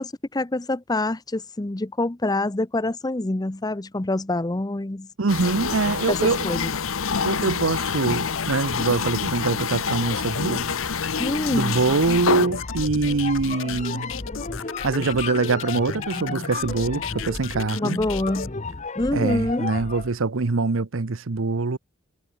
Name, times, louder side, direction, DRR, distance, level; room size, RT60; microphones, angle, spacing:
voice 1, 0.0-5.1 6.1-6.7 11.2-11.8 17.8-18.5 19.0-19.7, left 2 dB, 20° left, 0.7 m, -26 dB
voice 2, 5.2-6.4 7.2-10.8 11.5-14.1 14.8-18.0 19.1-21.8, right 3 dB, 75° right, 0.8 m, -24 dB
sound 1, 5.3-12.5, left 5 dB, 80° left, 1.1 m, -27 dB
sound 2, 7.8-18.5, left 9 dB, 65° left, 0.6 m, -35 dB
sound 3, 12.3-20.2, left 3 dB, 35° left, 1.2 m, -33 dB
head